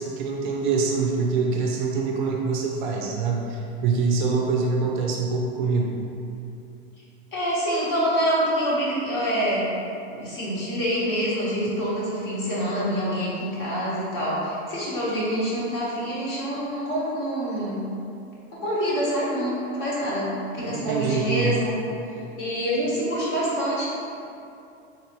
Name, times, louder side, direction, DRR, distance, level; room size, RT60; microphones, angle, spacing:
voice 1, 0.0-6.0 20.6-21.6, right 4 dB, 50° right, 0 dB, 0.4 m, -25 dB
voice 2, 7.3-17.9 18.5-21.7 22.4-23.8, equal, 40° left, -7 dB, 1.1 m, -26 dB
3.9 x 2.7 x 2.9 m, 2.6 s
supercardioid pair, 155°, 32 cm